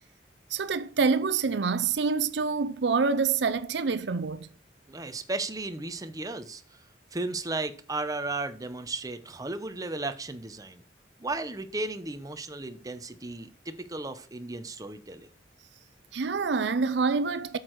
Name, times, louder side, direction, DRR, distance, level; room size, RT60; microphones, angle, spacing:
voice 1, 0.5-4.5 16.1-17.6, right 5 dB, 70° right, 0.5 m, -26 dB
voice 2, 4.9-6.6 7.1-10.8 11.2-15.3, right 2 dB, 20° right, 0.7 m, -35 dB
8.3 x 6.5 x 4.6 m
head